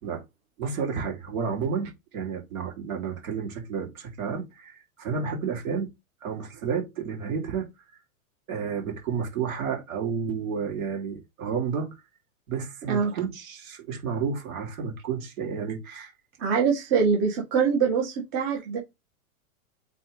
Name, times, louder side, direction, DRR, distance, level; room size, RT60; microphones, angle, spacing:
voice 1, 0.6-5.9 6.2-7.7 8.5-11.9 12.5-16.1, right 6 dB, 70° right, 3.3 m, -31 dB
voice 2, 16.4-18.8, right 6 dB, 40° right, 2.0 m, -24 dB
8.4 x 3.7 x 3.3 m
hypercardioid pair, 125°, 43 cm